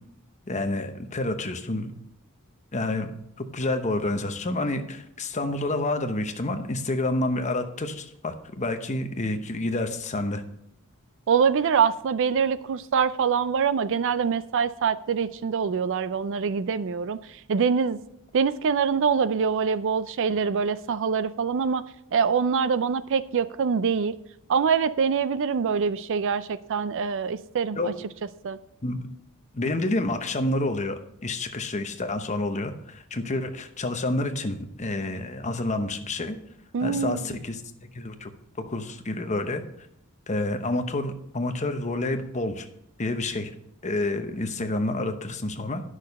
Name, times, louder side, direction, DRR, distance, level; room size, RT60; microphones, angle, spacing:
voice 1, 0.5-1.9 2.7-3.1 3.4-10.4 27.8-27.9 28.8-29.0 29.5-36.4 36.8-37.6 37.9-38.3 38.6-39.6 40.3-42.7 43.0-43.5 43.8-45.8, left 2 dB, 30° left, 7 dB, 0.9 m, -28 dB
voice 2, 11.3-17.2 17.5-18.0 18.3-21.8 22.1-24.1 24.5-27.9 28.4-28.6 36.7-37.4, right 6 dB, 60° right, 15 dB, 0.4 m, -24 dB
10.5 x 6.4 x 5.3 m, 0.75 s
head